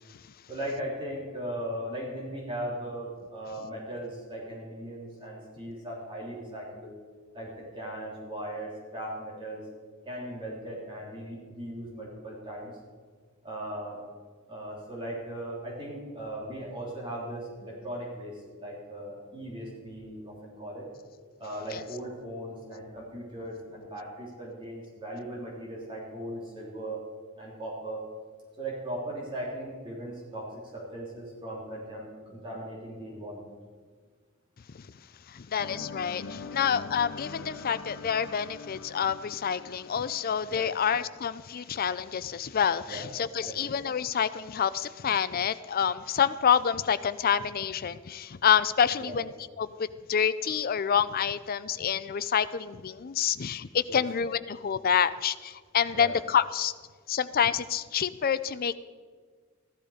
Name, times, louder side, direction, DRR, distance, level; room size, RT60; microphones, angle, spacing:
voice 1, 0.5-6.9 7.3-9.6 10.0-12.8 13.4-14.0 14.5-20.9 21.4-27.0 27.4-28.0 28.6-33.5 40.5-40.7 42.9-43.0 43.4-43.7 49.0-49.1 53.9-54.0 55.9-56.1, right 1 dB, 25° right, -4 dB, 3.3 m, -38 dB
voice 2, 35.3-56.7 57.1-58.8, left 8 dB, 45° left, 15 dB, 0.5 m, -28 dB
sound 1, 35.6-41.5, left 4 dB, 65° left, 0.8 m, -43 dB
15.0 x 12.0 x 5.0 m, 1.5 s
head